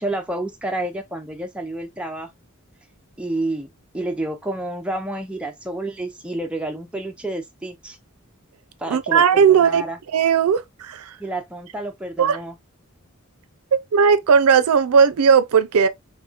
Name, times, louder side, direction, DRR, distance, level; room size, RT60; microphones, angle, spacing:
voice 1, 0.0-2.3 3.2-8.0 8.8-10.0 11.2-12.6, right 1 dB, 5° right, 0.4 m, -29 dB
voice 2, 8.9-9.8 10.1-11.1 12.2-12.4 13.7-15.9, right 6 dB, 90° right, 0.5 m, -16 dB
3.6 x 3.1 x 2.4 m
head